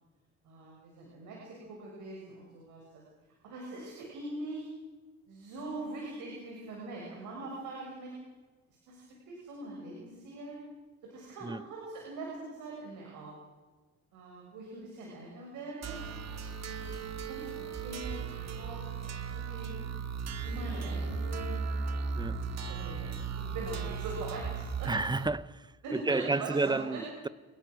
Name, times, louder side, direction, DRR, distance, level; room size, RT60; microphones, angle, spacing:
voice 1, 0.4-3.0 3.4-4.7 5.3-8.1 8.9-10.6 11.0-13.4 14.1-16.0 16.8-19.7 20.4-22.4 22.7-24.9 25.8-27.0, right 2 dB, 90° right, 7.1 m, -42 dB
sound 1, 15.8-25.3, right 5 dB, 60° right, 2.3 m, -36 dB
voice 2, 24.9-27.3, right 3 dB, 15° right, 0.7 m, -31 dB
27.5 x 20.5 x 6.5 m
cardioid pair, 90°, 30 cm